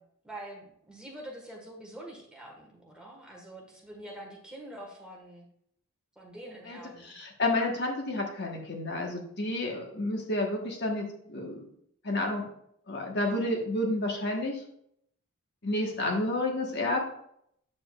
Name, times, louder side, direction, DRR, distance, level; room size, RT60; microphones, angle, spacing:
voice 1, 0.2-5.4 6.1-7.2 15.9-16.2, right 1 dB, 5° right, -2 dB, 1.5 m, -45 dB
voice 2, 6.7-11.7 12.0-12.5 12.9-14.6 15.6-17.0, left 2 dB, 50° left, 1 dB, 1.3 m, -30 dB
8.6 x 7.0 x 2.4 m, 0.70 s
head